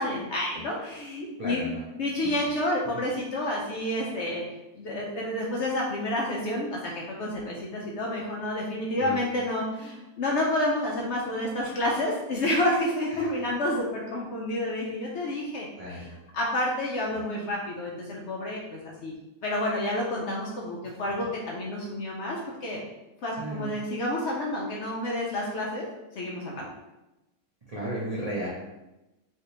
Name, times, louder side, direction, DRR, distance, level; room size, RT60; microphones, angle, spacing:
voice 1, 0.0-1.6 2.0-4.4 4.8-16.1 16.3-19.2 19.4-22.8 23.2-26.7, left 1 dB, 70° left, -3 dB, 0.7 m, -29 dB
voice 2, 1.4-1.8 2.2-2.5 9.0-9.2 13.1-13.5 15.8-16.1 20.8-21.0 23.4-23.8 27.7-28.5, right 1 dB, 80° right, -6 dB, 0.3 m, -35 dB
3.3 x 2.8 x 2.9 m, 0.99 s
omnidirectional pair, 1.6 m